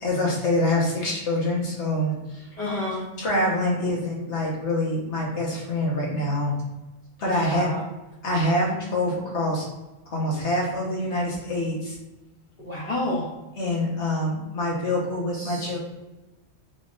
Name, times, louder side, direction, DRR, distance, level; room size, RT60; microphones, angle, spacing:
voice 1, 0.0-2.5 3.2-6.5 7.2-7.7 8.2-9.6 10.1-12.0 13.6-15.8, left 1 dB, 75° left, -3 dB, 1.5 m, -25 dB
voice 2, 2.6-3.1 7.2-7.8 12.6-13.3 15.3-15.7, left 1 dB, 35° left, -7 dB, 1.0 m, -29 dB
4.4 x 3.6 x 2.5 m, 1.1 s
omnidirectional pair, 1.2 m